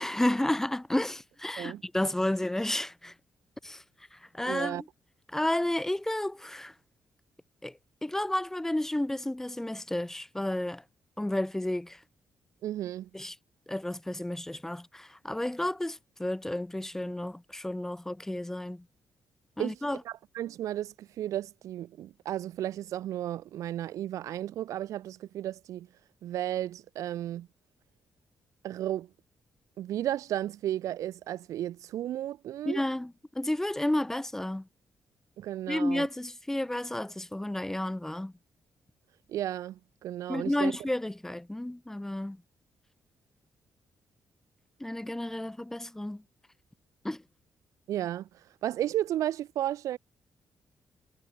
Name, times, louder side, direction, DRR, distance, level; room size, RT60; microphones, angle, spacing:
voice 1, 0.0-3.1 3.6-3.8 4.1-4.8 5.3-6.7 7.6-10.8 11.2-12.0 13.1-13.3 13.7-18.8 19.6-20.0 32.7-34.7 35.7-38.3 40.3-42.4 44.8-46.2 47.0-47.2, left 1 dB, 5° left, 1.2 m, -31 dB
voice 2, 4.4-4.8 12.6-13.1 19.6-19.8 20.0-25.9 26.2-27.5 28.6-29.1 29.8-32.8 35.4-36.1 39.3-40.7 47.9-48.3 48.6-50.0, right 12 dB, 90° right, 1.5 m, -33 dB
cardioid pair, 125°, 5 cm